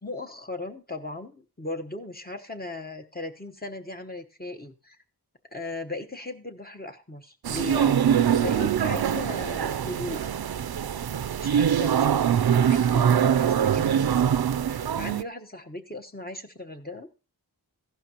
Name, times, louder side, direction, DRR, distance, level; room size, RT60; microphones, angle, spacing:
voice 1, 0.0-5.0 5.5-8.0 8.3-10.2 11.4-12.1 12.5-14.0 14.7-17.1, left 2 dB, 25° left, 4 dB, 1.1 m, -37 dB
sound 1, 7.4-15.2, right 8 dB, 70° right, 0.5 m, -23 dB
15.0 x 11.5 x 2.9 m, 0.34 s
wide cardioid pair, 60°, 39 cm